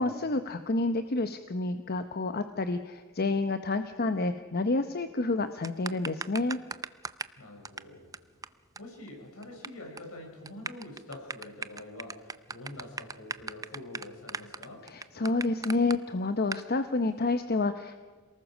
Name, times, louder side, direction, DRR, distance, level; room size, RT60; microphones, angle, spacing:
voice 1, 0.0-6.6 14.9-18.0, left 3 dB, 45° left, 9 dB, 0.8 m, -29 dB
sound 1, 5.6-7.4 7.6-7.8 8.1-8.2 8.4-8.5 8.8-8.9 9.1-9.7 10.0-10.1 10.5-16.0 16.5-16.6, right 4 dB, 15° right, 0.5 m, -37 dB
voice 2, 7.4-8.1 8.8-14.9, left 1 dB, 70° left, 1 dB, 6.7 m, -45 dB
27.5 x 19.0 x 6.3 m, 1.5 s
head